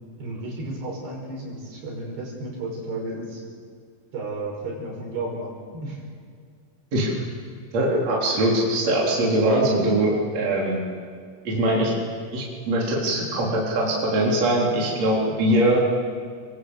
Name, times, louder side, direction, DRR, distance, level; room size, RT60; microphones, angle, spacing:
voice 1, 0.2-3.4 4.1-6.0, right 2 dB, 65° right, -1 dB, 7.6 m, -33 dB
voice 2, 7.7-10.8 11.4-11.9 12.3-15.8, right 1 dB, 40° right, -4 dB, 4.8 m, -22 dB
26.0 x 23.0 x 8.2 m, 2.1 s
omnidirectional pair, 5.0 m